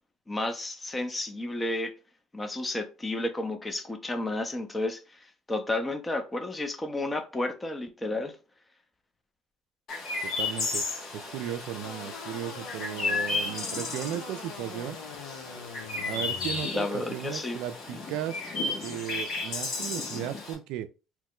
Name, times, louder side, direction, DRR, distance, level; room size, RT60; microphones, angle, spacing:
voice 1, 0.3-1.9 2.3-8.4 16.7-17.6, left 2 dB, 20° left, 0.6 m, -32 dB
Chirp tweet, 9.9-20.6, left 3 dB, 55° left, 1.4 m, -34 dB
voice 2, 10.4-10.8 11.1-15.0 16.1-18.4 18.8-20.9, right 11 dB, 75° right, 0.4 m, -35 dB
sound 1, 11.8-16.6, left 5 dB, 85° left, 0.6 m, -43 dB
3.0 x 2.1 x 3.6 m
supercardioid pair, 80°, 0 cm